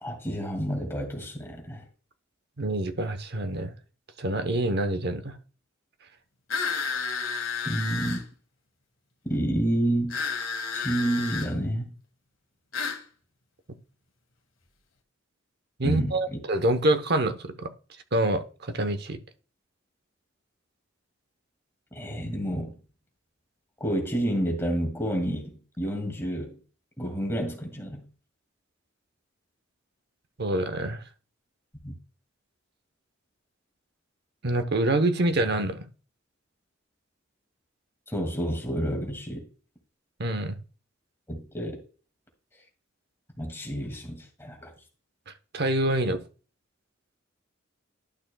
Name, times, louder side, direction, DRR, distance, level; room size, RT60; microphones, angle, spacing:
voice 1, 0.0-1.8 7.6-8.2 9.2-10.2 10.7-11.9 15.8-16.2 21.9-22.8 23.8-25.4 25.8-26.6 27.0-28.0 31.8-31.9 38.1-39.4 41.3-41.8 43.4-44.7, right 1 dB, 10° left, 2.2 m, -29 dB
voice 2, 2.6-3.7 4.2-5.4 15.8-17.7 18.1-19.2 30.4-31.0 34.4-35.9 40.2-40.6 45.5-46.2, right 1 dB, 55° right, 0.9 m, -26 dB
sound 1, 6.5-8.2 10.1-11.5 12.7-13.0, left 5 dB, 90° left, 1.6 m, -31 dB
11.5 x 6.3 x 2.2 m
head